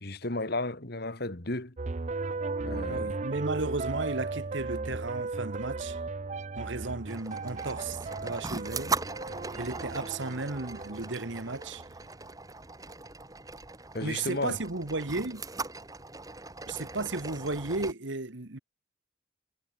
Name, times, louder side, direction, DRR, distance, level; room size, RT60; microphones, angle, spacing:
voice 1, 0.0-1.7 2.6-3.1 13.9-14.6, left 2 dB, 50° left, 2.1 m, -33 dB
sound 1, 1.8-12.0, right 3 dB, 35° right, 0.5 m, -36 dB
voice 2, 2.9-6.0 6.5-8.9 9.6-11.8 14.0-15.4 16.7-18.6, right 3 dB, 65° right, 1.6 m, -34 dB
sound 2, 7.1-17.9, right 3 dB, 15° right, 2.4 m, -39 dB
head